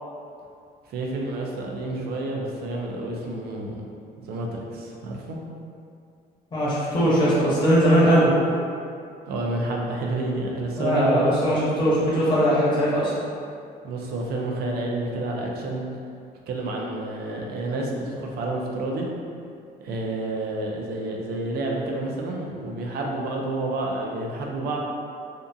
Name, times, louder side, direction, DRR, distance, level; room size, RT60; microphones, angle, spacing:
voice 1, 0.9-3.8 4.2-5.4 9.2-11.6 13.8-15.9 16.5-19.1 19.8-24.8, right 2 dB, 65° right, -1 dB, 0.5 m, -29 dB
voice 2, 6.5-8.3 10.8-13.1, equal, 25° left, -10 dB, 0.9 m, -20 dB
2.6 x 2.5 x 2.3 m, 2.4 s
cardioid pair, 110°, 17 cm